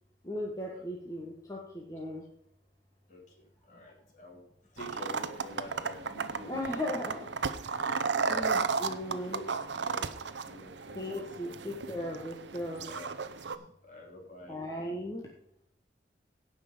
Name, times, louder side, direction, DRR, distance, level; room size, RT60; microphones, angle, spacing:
voice 1, 0.2-2.2 6.5-7.3 8.3-9.4 10.9-12.8 14.5-15.2, left 1 dB, 20° left, -2 dB, 1.4 m, -37 dB
voice 2, 3.1-4.4 4.7-6.8 7.6-9.4 9.8-11.5 12.8-13.1 13.3-14.6, left 1 dB, 45° left, -2 dB, 3.3 m, -49 dB
sound 1, 4.8-13.6, right 5 dB, 85° right, 0.7 m, -34 dB
16.5 x 5.9 x 5.1 m, 0.70 s
head